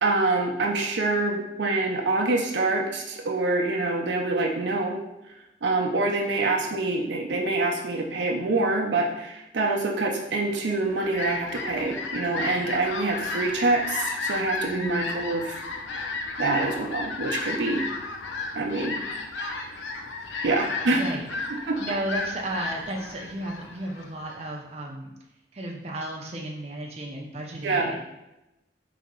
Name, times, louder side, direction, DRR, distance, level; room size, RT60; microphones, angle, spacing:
voice 1, 0.0-5.0 5.6-15.6 16.4-17.8 18.5-19.0 19.4-19.8 20.4-21.0 21.5-21.8 27.6-27.9, right 2 dB, 80° right, 1 dB, 0.6 m, -26 dB
Fowl, 10.6-24.5, left 3 dB, 90° left, 0.5 m, -33 dB
voice 2, 20.9-21.3 21.8-25.1 25.5-28.0, right 1 dB, 35° right, -1 dB, 0.5 m, -33 dB
4.1 x 2.9 x 3.7 m, 0.92 s
head